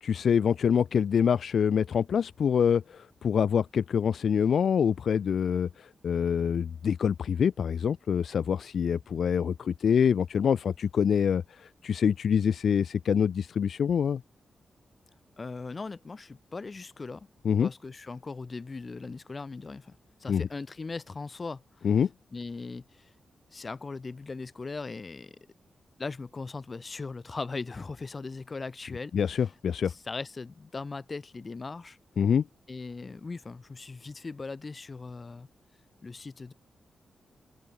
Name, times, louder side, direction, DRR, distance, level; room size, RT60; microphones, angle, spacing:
voice 1, 0.0-14.2 17.4-17.7 20.3-20.4 21.8-22.1 29.1-29.9 32.2-32.5, left 7 dB, 65° left, 0.8 m, -25 dB
voice 2, 15.4-17.3 17.6-21.9 22.3-23.1 23.5-25.3 26.0-29.1 29.9-32.0 32.7-35.5 36.0-36.5, left 4 dB, 30° left, 3.5 m, -39 dB
open air
wide cardioid pair, 145°, 0 cm